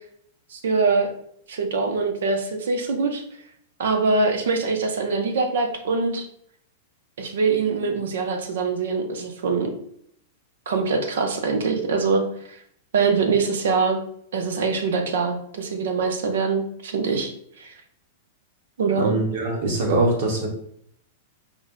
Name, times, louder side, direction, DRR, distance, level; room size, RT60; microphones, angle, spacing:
voice 1, 0.5-1.1 1.5-3.2 3.8-6.3 7.2-9.7 10.7-12.6 12.9-14.0 14.3-17.3 17.6-17.7 18.8-19.2, right 4 dB, 80° right, 5 dB, 0.7 m, -23 dB
voice 2, 18.9-20.5, right 2 dB, 60° right, -1 dB, 1.4 m, -23 dB
4.7 x 2.1 x 3.7 m, 0.67 s
supercardioid pair, 155°, 0 cm